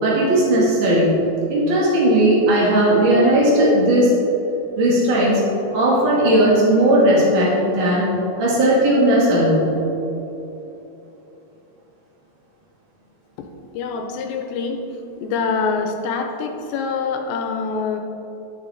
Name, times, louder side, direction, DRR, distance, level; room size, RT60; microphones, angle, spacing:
voice 1, 0.0-1.2 1.5-4.1 4.7-5.4 5.7-8.1 8.4-9.7, right 1 dB, 50° right, -6 dB, 1.4 m, -16 dB
voice 2, 13.7-14.8 15.2-18.0, left 5 dB, 90° left, 4 dB, 2.9 m, -25 dB
12.0 x 7.1 x 4.1 m, 3.0 s
omnidirectional pair, 5.1 m